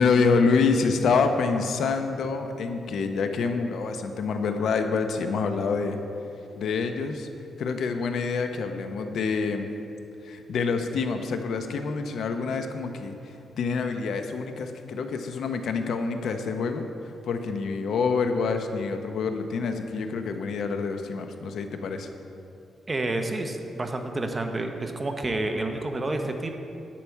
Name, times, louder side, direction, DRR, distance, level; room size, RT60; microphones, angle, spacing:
voice 1, 0.0-6.0 6.6-7.3 7.6-9.7 10.2-16.9 17.2-22.1, left 4 dB, 70° left, 7 dB, 0.7 m, -26 dB
voice 2, 22.9-26.5, right 2 dB, 25° right, 5 dB, 0.8 m, -29 dB
10.0 x 8.6 x 4.6 m, 2.8 s
cardioid pair, 125°, 0 cm